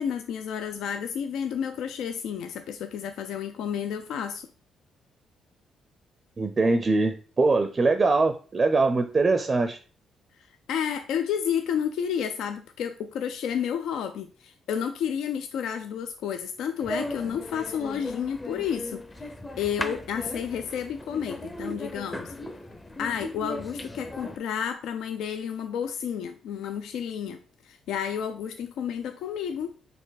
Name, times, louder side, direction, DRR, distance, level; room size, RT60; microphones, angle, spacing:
voice 1, 0.0-4.4 10.4-19.3 19.6-22.3 23.0-29.7, left 8 dB, 80° left, 8 dB, 0.3 m, -31 dB
voice 2, 6.4-9.8, right 3 dB, 35° right, 8 dB, 0.4 m, -22 dB
sound 1, 16.8-24.4, left 1 dB, 20° left, 0.6 m, -37 dB
4.3 x 2.6 x 4.0 m, 0.38 s
cardioid pair, 90°, 0 cm